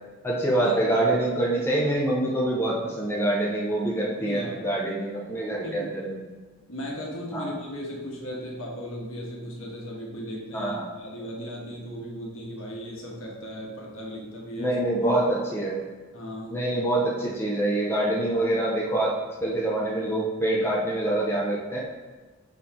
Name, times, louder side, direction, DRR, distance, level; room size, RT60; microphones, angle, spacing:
voice 1, 0.2-6.3 7.3-7.5 10.5-10.9 14.6-15.8 16.5-19.1 19.4-21.8, right 1 dB, 10° left, -5 dB, 0.8 m, -25 dB
voice 2, 4.2-4.6 5.6-6.0 6.7-14.7 16.1-16.7, equal, 65° left, -3 dB, 1.5 m, -36 dB
5.8 x 4.2 x 4.4 m, 1.3 s
head